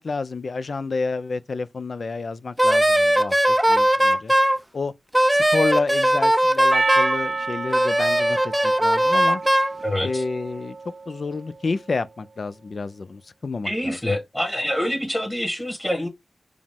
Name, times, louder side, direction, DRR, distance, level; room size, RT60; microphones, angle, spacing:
voice 1, 0.0-4.3 4.7-4.9 5.3-9.4 10.0-14.0, left 4 dB, 65° left, 0.4 m, -29 dB
Wind instrument woodwind instrument, 2.6-4.6 5.1-7.2 7.7-9.7, right 1 dB, 10° right, 0.3 m, -19 dB
Percussion, 6.7-11.3, right 3 dB, 70° right, 0.5 m, -29 dB
voice 2, 9.8-10.2 13.6-16.1, left 1 dB, 15° left, 1.6 m, -26 dB
4.9 x 2.1 x 3.5 m
cardioid pair, 50°, 0 cm